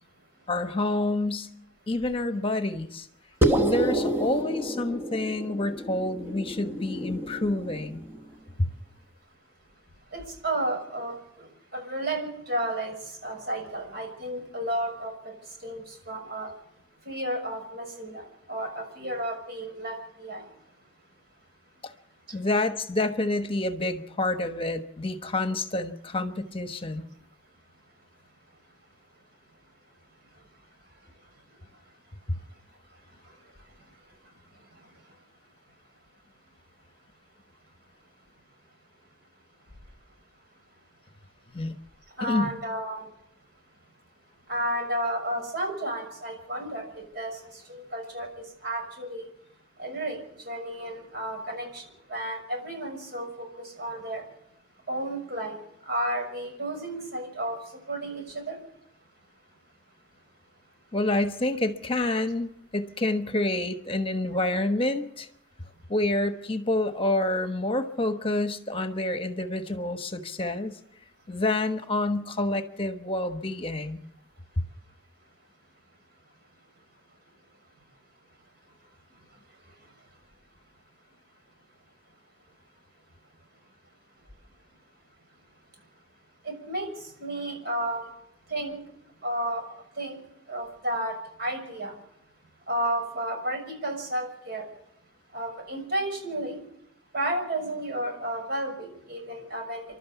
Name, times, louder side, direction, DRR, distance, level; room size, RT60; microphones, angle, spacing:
voice 1, 0.5-1.5 1.9-3.1 3.6-8.1 8.6-8.7 21.8-21.9 22.3-27.1 32.3-32.4 41.5-41.8 42.2-42.5 60.9-65.3 65.9-70.8 71.3-74.0, left 2 dB, 30° left, 8 dB, 1.2 m, -28 dB
sound 1, 3.4-8.2, right 1 dB, 10° right, 1.2 m, -28 dB
voice 2, 10.1-11.5 11.7-12.9 13.2-15.1 15.6-16.5 17.0-20.4 42.2-43.0 44.5-47.3 47.9-48.3 48.6-49.3 49.8-50.2 50.4-51.8 52.1-54.2 54.9-55.6 55.9-57.6 57.9-58.5 86.4-86.9 87.2-88.0 88.5-88.8 89.2-89.6 90.0-90.2 90.5-91.9 92.7-94.7 95.3-96.6 97.1-99.8, right 1 dB, 55° right, 4 dB, 6.4 m, -32 dB
29.5 x 12.0 x 7.2 m, 0.75 s
head